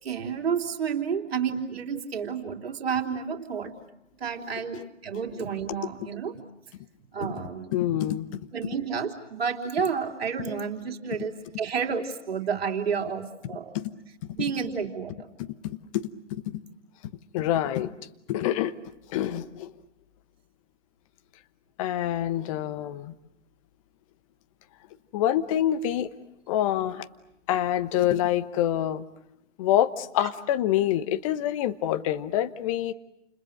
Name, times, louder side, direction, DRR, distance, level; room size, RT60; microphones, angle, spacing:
voice 1, 0.0-3.7 4.2-6.4 7.1-8.0 8.5-13.7 14.3-15.3 22.0-22.1, right 6 dB, 55° right, 3 dB, 3.4 m, -30 dB
voice 2, 7.7-8.4 13.7-13.9 15.6-16.6 17.3-17.9 18.3-18.7 19.1-19.7 21.8-23.1 25.1-26.1 26.5-27.1 27.5-29.0 29.6-32.9, left 12 dB, 25° left, 12 dB, 1.1 m, -26 dB
29.5 x 29.5 x 6.5 m, 0.84 s
figure-of-eight pair, 130°, 37 cm